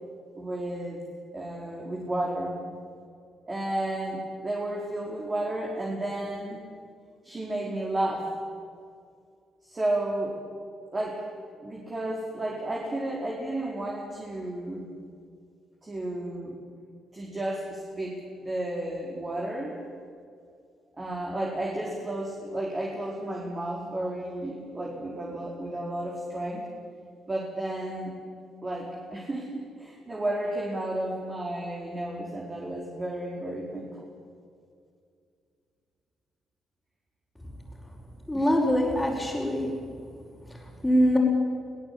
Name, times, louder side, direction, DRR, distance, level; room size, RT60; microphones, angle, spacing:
voice 1, 0.3-1.0 1.3-2.6 3.5-6.6 7.2-8.3 9.6-10.4 10.9-11.2 11.5-14.9 15.8-16.6 17.1-19.8 20.9-26.7 27.3-28.1 28.6-34.0 38.3-38.5, right 1 dB, 25° right, -2 dB, 4.6 m, -32 dB
voice 2, 38.3-39.7 40.8-41.2, equal, 10° left, -8 dB, 5.3 m, -23 dB
23.5 x 18.0 x 8.7 m, 2.3 s
cardioid pair, 90°, 0 cm